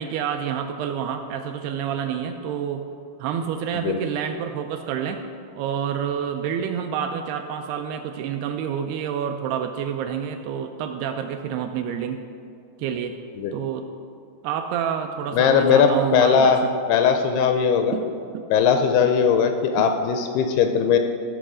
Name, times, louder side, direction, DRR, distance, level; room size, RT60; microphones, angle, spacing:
voice 1, 0.0-2.8 3.2-5.2 5.6-12.2 12.8-13.2 13.5-13.9 14.4-16.8 17.9-18.1 18.3-18.5 19.8-19.9, right 8 dB, 85° right, 5 dB, 2.4 m, -28 dB
voice 2, 15.3-16.6 16.9-17.9 18.5-21.0, left 6 dB, 85° left, 6 dB, 2.4 m, -19 dB
15.0 x 6.5 x 4.9 m, 2.5 s
omnidirectional pair, 4.9 m